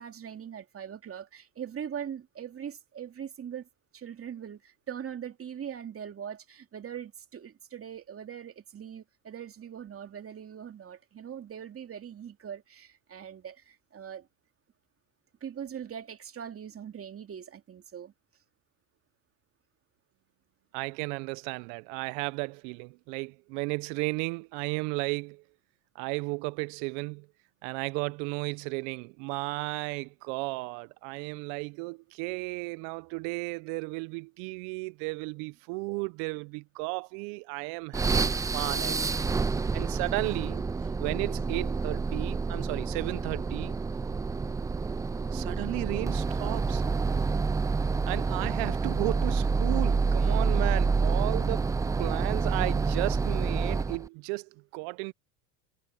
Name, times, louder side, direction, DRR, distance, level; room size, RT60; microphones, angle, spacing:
voice 1, 0.0-14.3 15.4-18.1, right 8 dB, 30° right, 2.6 m, -41 dB
voice 2, 20.7-25.4 25.9-27.3 27.6-39.3 39.7-40.6 41.0-43.8 45.3-46.8 48.1-55.1, right 28 dB, 65° right, 0.9 m, -34 dB
sound 1, 37.9-54.1, right 4 dB, 10° right, 0.3 m, -28 dB
hypercardioid pair, 90°, 42 cm